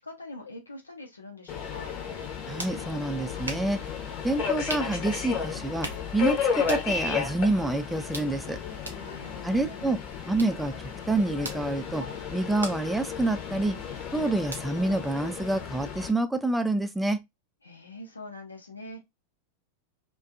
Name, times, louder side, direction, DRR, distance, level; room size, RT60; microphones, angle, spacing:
voice 1, 0.0-1.9 9.0-10.1 17.6-19.0, left 2 dB, 80° left, 0.7 m, -44 dB
Subway metro underground, 1.5-16.1, left 6 dB, 35° left, 0.8 m, -33 dB
sound 1, 2.1-15.9, right 2 dB, 80° right, 0.6 m, -44 dB
voice 2, 2.5-3.8 4.2-8.6 9.4-10.0 10.3-13.8 14.1-17.2, right 2 dB, 5° right, 0.3 m, -27 dB
2.5 x 2.2 x 2.4 m
figure-of-eight pair, 90°, 0 cm